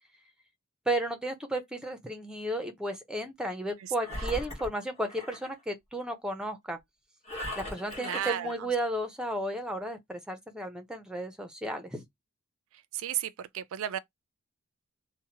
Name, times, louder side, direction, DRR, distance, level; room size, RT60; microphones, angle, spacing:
voice 1, 0.9-6.8 7.6-12.0, right 1 dB, 5° right, 0.5 m, -33 dB
Engine, 4.0-5.5 7.2-8.6, left 1 dB, 30° left, 1.1 m, -38 dB
voice 2, 8.0-8.5 12.9-14.0, right 11 dB, 65° right, 0.3 m, -33 dB
2.7 x 2.1 x 2.8 m
head